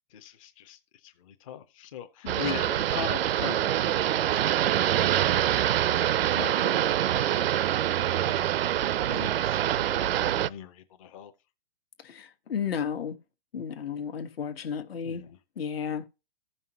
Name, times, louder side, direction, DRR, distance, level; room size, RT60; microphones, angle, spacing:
voice 1, 0.1-7.5 8.2-8.5 9.1-11.3 15.0-15.4, left 9 dB, 35° left, 0.6 m, -41 dB
voice 2, 2.2-2.6 12.0-13.2 13.5-15.2 15.6-16.1, left 7 dB, 75° left, 1.3 m, -33 dB
sound 1, 2.3-10.5, right 11 dB, 75° right, 0.5 m, -25 dB
15.0 x 5.6 x 2.9 m
hypercardioid pair, 165°, 30 cm